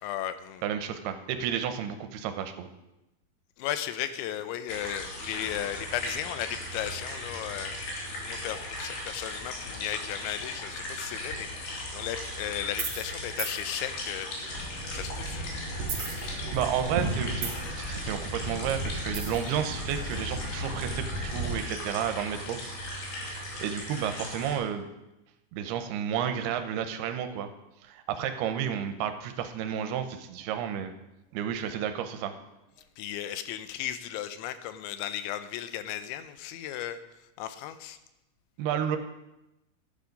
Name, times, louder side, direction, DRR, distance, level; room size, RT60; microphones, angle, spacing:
voice 1, 0.0-0.6 3.6-7.8 8.3-15.5 15.8-15.9 33.0-37.0 37.4-38.0, left 11 dB, 85° left, 11 dB, 3.0 m, -35 dB
voice 2, 0.6-2.7 16.2-22.6 22.9-24.9 25.5-27.5 27.8-30.9 31.3-32.3 38.6-39.0, right 9 dB, 80° right, 8 dB, 2.4 m, -32 dB
sound 1, 4.7-24.6, left 1 dB, 60° left, 4.1 m, -38 dB
sound 2, 12.7-13.1 13.4-13.6 15.8-16.7 17.0-17.8 19.1-19.5, right 5 dB, 50° right, 2.0 m, -33 dB
sound 3, 14.5-21.6, right 1 dB, 30° left, 4.1 m, -36 dB
12.0 x 8.4 x 5.2 m, 0.94 s
omnidirectional pair, 5.2 m